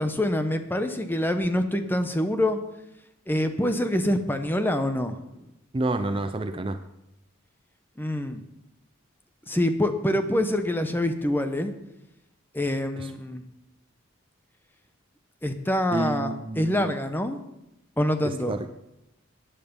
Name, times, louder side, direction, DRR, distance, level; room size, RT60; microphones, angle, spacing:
voice 1, 0.0-2.6 3.3-5.2 8.0-8.4 9.5-11.7 12.5-13.4 15.4-17.4 18.0-18.6, left 1 dB, 10° left, 8 dB, 0.8 m, -25 dB
voice 2, 5.7-6.8 13.0-13.1 15.9-16.9 18.2-18.7, right 2 dB, 25° right, 9 dB, 0.5 m, -29 dB
14.0 x 10.0 x 5.4 m, 0.87 s
head